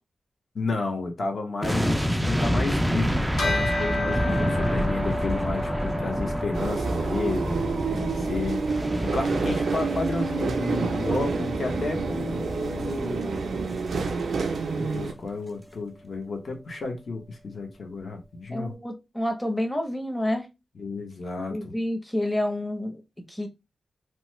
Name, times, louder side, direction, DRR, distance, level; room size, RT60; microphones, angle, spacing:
voice 1, 0.5-7.6 8.0-8.6 9.0-13.4 14.7-18.7 20.8-21.7, left 3 dB, 55° left, 0.9 m, -32 dB
sound 1, 1.6-14.8 15.0-15.2, equal, 5° right, 0.3 m, -29 dB
Bell, 3.4-13.1, left 1 dB, 80° left, 1.0 m, -34 dB
sound 2, 6.5-15.1, right 4 dB, 80° right, 0.4 m, -28 dB
voice 2, 7.9-8.3 18.5-20.5 21.5-23.0 23.3-23.5, left 1 dB, 10° left, 0.7 m, -29 dB
3.0 x 2.1 x 3.1 m
wide cardioid pair, 85°, 0 cm